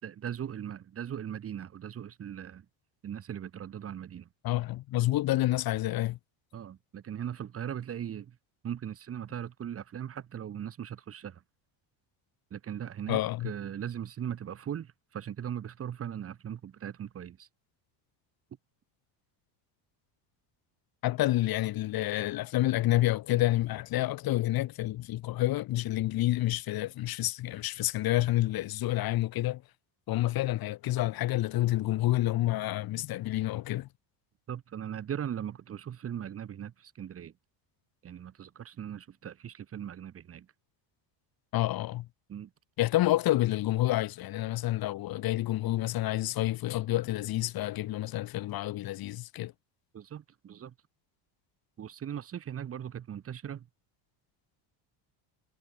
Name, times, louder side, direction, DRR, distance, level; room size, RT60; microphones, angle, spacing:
voice 1, 0.0-2.6 3.0-4.3 6.5-8.4 8.6-11.4 12.5-17.5 34.5-37.3 38.0-40.5 42.3-42.5 49.9-50.7 51.8-53.7, right 9 dB, 25° right, 2.8 m, -39 dB
voice 2, 4.4-6.2 13.1-13.5 21.0-29.6 30.1-33.9 41.5-42.1 42.8-49.5, left 16 dB, 45° left, 3.3 m, -29 dB
cardioid pair, 175°, 50 cm